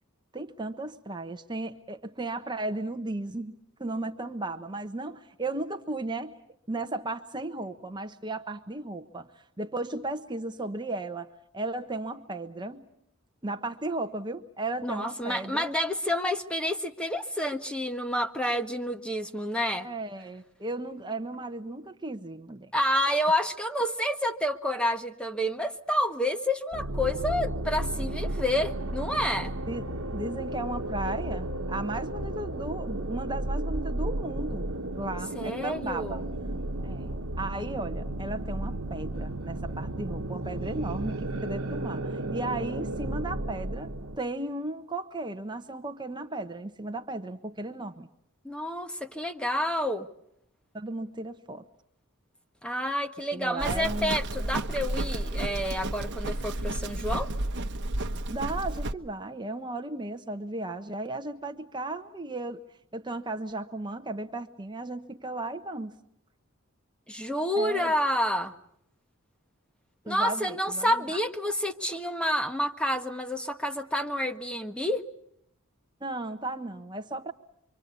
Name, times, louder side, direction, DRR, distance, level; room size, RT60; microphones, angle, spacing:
voice 1, 0.3-3.5 3.8-6.3 6.7-11.3 11.5-12.9 13.4-15.8 19.8-22.7 29.7-29.9 30.1-34.7 35.0-36.2 36.8-48.1 50.7-51.6 53.3-54.2 58.3-62.6 62.9-66.0 67.6-67.9 70.1-71.0 76.0-77.3, right 2 dB, 20° right, 7 dB, 1.0 m, -35 dB
voice 2, 14.8-19.9 22.7-29.5 35.3-36.2 48.4-50.1 52.6-57.3 67.1-68.5 70.0-75.0, left 1 dB, 5° left, 7 dB, 1.3 m, -29 dB
sound 1, 26.7-44.2, right 1 dB, 70° right, 1.2 m, -33 dB
Livestock farm animals working animals, 53.6-58.9, right 1 dB, 55° right, 1.1 m, -32 dB
26.0 x 25.0 x 8.3 m, 0.74 s
head